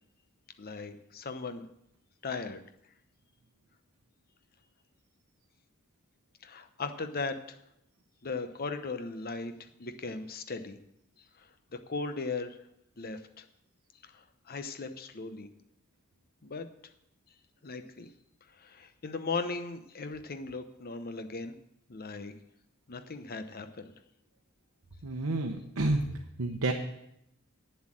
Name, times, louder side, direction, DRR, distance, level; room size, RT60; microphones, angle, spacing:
voice 1, 0.6-1.7 2.2-2.6 6.4-7.6 8.2-9.5 9.8-10.8 11.7-12.6 13.0-13.4 14.0-15.5 16.4-16.7 17.6-18.1 18.6-21.5 21.9-22.3 22.9-23.9, left 4 dB, 45° left, 9 dB, 0.8 m, -37 dB
voice 2, 25.0-26.0 26.4-26.7, right 2 dB, 80° right, 3 dB, 0.9 m, -29 dB
9.6 x 7.6 x 7.5 m, 0.78 s
head